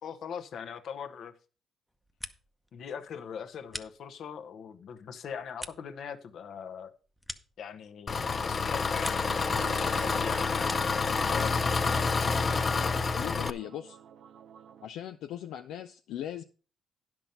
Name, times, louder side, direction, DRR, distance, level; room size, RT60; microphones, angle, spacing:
voice 1, 0.0-1.4 2.7-6.9 7.6-10.9 11.2-11.6, left 7 dB, 65° left, 1.1 m, -41 dB
sound 1, 1.9-2.7 3.0-4.5 4.9-8.2 8.5-9.4 9.7-11.1, equal, ahead, 0.8 m, -46 dB
Engine, 8.1-13.5, left 4 dB, 35° left, 0.6 m, -28 dB
sound 2, 8.9-14.9, right 8 dB, 70° right, 0.7 m, -48 dB
voice 2, 13.1-14.0 14.8-16.4, left 11 dB, 85° left, 0.5 m, -39 dB
10.5 x 6.0 x 5.4 m
cardioid pair, 90°, 0 cm